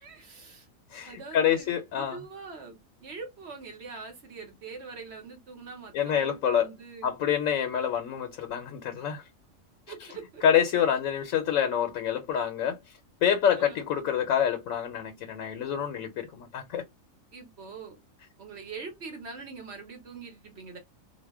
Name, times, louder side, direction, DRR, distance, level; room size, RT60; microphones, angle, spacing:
voice 1, 0.0-0.7 1.0-7.1 9.9-10.4 11.5-11.6 13.5-13.9 17.3-18.0 18.4-20.8, right 4 dB, 55° right, 1.1 m, -43 dB
voice 2, 0.9-2.2 5.9-6.7 7.0-9.2 10.4-12.8 13.2-16.8, left 9 dB, 75° left, 1.0 m, -27 dB
2.6 x 2.1 x 3.4 m
omnidirectional pair, 1.4 m